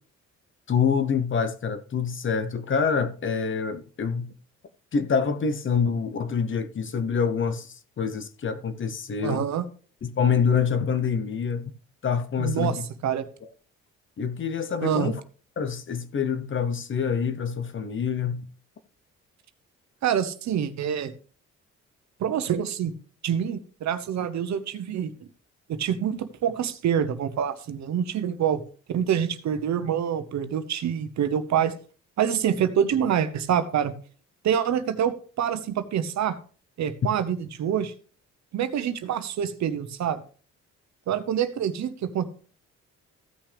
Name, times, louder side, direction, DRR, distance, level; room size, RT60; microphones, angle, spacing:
voice 1, 0.7-4.3 4.9-9.4 10.0-11.7 12.0-12.8 13.4-13.5 14.2-15.2 15.6-18.4, left 6 dB, 40° left, 0.9 m, -26 dB
voice 2, 9.2-9.6 12.4-13.3 14.8-15.1 20.0-21.1 22.2-22.9 23.2-25.3 25.7-28.6 28.9-31.7 32.2-33.9 34.4-36.3 36.8-37.9 38.5-40.2 41.1-42.3, right 9 dB, 65° right, 1.0 m, -26 dB
15.0 x 5.9 x 3.4 m
cardioid pair, 90°, 30 cm